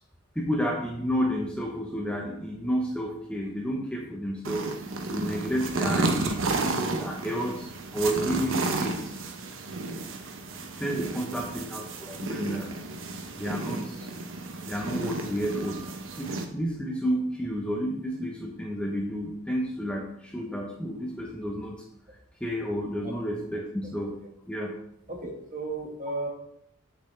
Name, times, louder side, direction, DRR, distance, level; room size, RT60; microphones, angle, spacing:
voice 1, 0.4-4.7 5.1-6.4 7.0-7.7 7.9-9.2 10.6-12.7 13.4-14.1 14.7-15.9 16.2-21.8 22.4-24.1 24.5-24.7, equal, 5° left, -1 dB, 0.8 m, -31 dB
sound 1, 4.4-16.4, right 3 dB, 60° right, 0.9 m, -32 dB
voice 2, 11.0-11.5 23.0-23.2 25.1-26.3, right 2 dB, 35° right, 0 dB, 1.6 m, -36 dB
8.1 x 6.8 x 3.3 m, 0.73 s
head